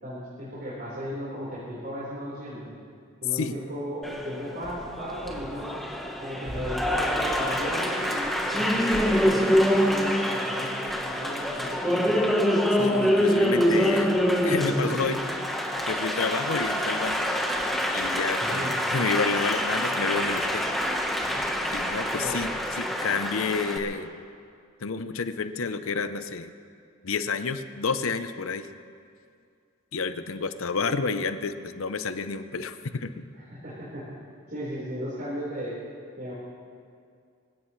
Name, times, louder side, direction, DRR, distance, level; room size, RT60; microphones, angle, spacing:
voice 1, 0.0-2.7 3.2-5.8 6.2-12.3 18.4-18.8 22.2-22.4 33.6-34.0 34.5-35.7 36.2-36.3, equal, 45° right, -10 dB, 4.4 m, -36 dB
Applause, 4.0-23.8, equal, ahead, 1.1 m, -26 dB
voice 2, 12.8-14.1 14.4-15.2 15.9-17.3 17.9-20.7 21.7-24.1 24.8-26.5 27.0-28.7 29.9-33.1, left 4 dB, 70° left, 10 dB, 0.7 m, -30 dB
24.5 x 16.5 x 3.2 m, 2.3 s
head